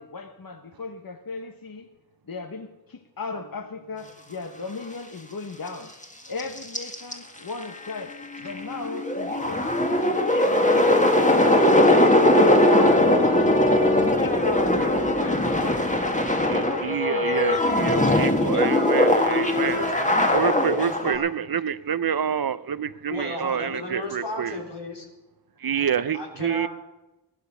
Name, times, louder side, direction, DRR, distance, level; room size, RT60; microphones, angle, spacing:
voice 1, 0.0-1.9 2.3-5.9 6.3-12.1 12.3-18.4, left 4 dB, 55° left, 1.1 m, -36 dB
voice 2, 3.8-4.6 18.4-20.4 20.7-21.3 23.1-25.0 26.1-26.7, left 2 dB, 80° left, 3.6 m, -34 dB
sound 1, 6.0-6.1 6.4-7.1 7.6-7.7 7.9-21.1, left 1 dB, 15° left, 1.7 m, -20 dB
voice 3, 16.5-19.8 20.3-24.6 25.6-26.7, right 8 dB, 60° right, 0.6 m, -27 dB
15.5 x 12.0 x 5.6 m
wide cardioid pair, 50°, 42 cm